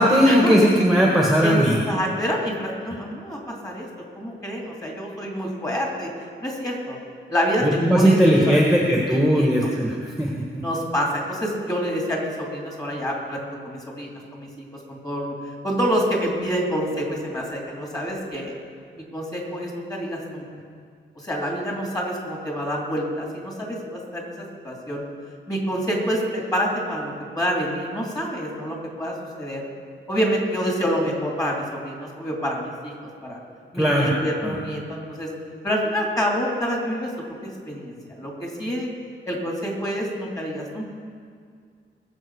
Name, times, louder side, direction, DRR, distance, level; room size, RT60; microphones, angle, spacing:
voice 1, 0.0-1.8 7.6-10.6 33.7-34.1 34.4-34.5, equal, ahead, -2 dB, 1.5 m, -18 dB
voice 2, 1.4-3.9 4.1-6.1 6.4-7.0 7.3-7.6 7.9-8.2 8.5-8.6 9.1-9.7 10.6-15.3 15.6-18.5 19.0-20.5 21.1-25.1 25.5-29.7 30.1-32.9 33.2-33.4 33.7-35.3 35.6-37.1 37.4-38.9 39.3-41.0, equal, 20° left, -2 dB, 2.8 m, -27 dB
20.5 x 7.4 x 4.8 m, 2.1 s
wide cardioid pair, 135°, 20 cm